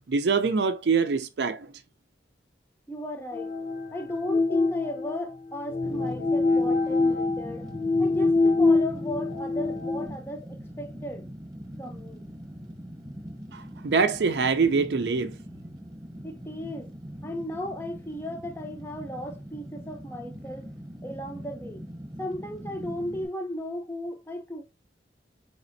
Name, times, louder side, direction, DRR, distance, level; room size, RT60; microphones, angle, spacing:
voice 1, 0.1-1.7 13.5-15.3, right 5 dB, 75° right, 0.5 m, -24 dB
voice 2, 2.9-3.5 3.9-7.7 8.0-11.3 11.8-12.2 16.2-16.9 17.2-20.7 21.0-21.8 22.2-24.6, left 1 dB, 15° left, 0.6 m, -36 dB
sound 1, 3.3-10.1, left 3 dB, 65° left, 0.7 m, -25 dB
Fire, 5.8-23.3, equal, 20° right, 0.9 m, -42 dB
4.1 x 3.6 x 2.6 m
head